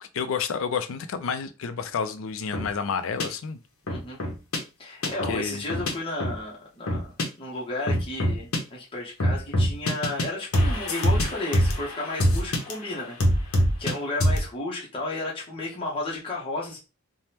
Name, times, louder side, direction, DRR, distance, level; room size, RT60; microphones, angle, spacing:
voice 1, 0.0-3.6 5.0-5.6, left 6 dB, 65° left, 0.4 m, -30 dB
sound 1, 2.5-2.7 3.2-3.3 3.9-4.6 5.0-5.3 5.7-5.9 6.2-6.3 6.9-7.2 7.9-8.6 9.2-10.2 10.5-12.7 13.2-13.9 14.2-14.4, equal, 90° left, 0.8 m, -23 dB
voice 2, 3.9-4.2 4.8-7.1 7.4-16.8, left 2 dB, 25° left, 0.7 m, -33 dB
3.3 x 2.1 x 2.8 m
head